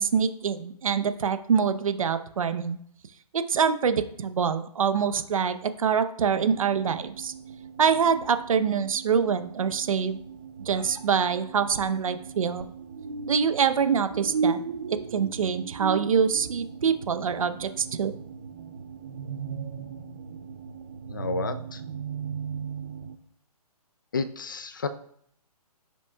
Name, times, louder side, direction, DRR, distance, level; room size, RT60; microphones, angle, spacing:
voice 1, 0.0-2.8 3.3-7.3 7.8-10.2 10.6-12.6 13.3-14.6 14.9-18.1, right 6 dB, 55° right, 11 dB, 0.8 m, -25 dB
sound 1, 6.3-23.2, right 6 dB, 30° right, 0.5 m, -37 dB
voice 2, 21.1-21.8 24.1-24.9, left 4 dB, 30° left, 11 dB, 0.4 m, -31 dB
15.0 x 6.1 x 2.3 m, 0.65 s
hypercardioid pair, 170°, 20 cm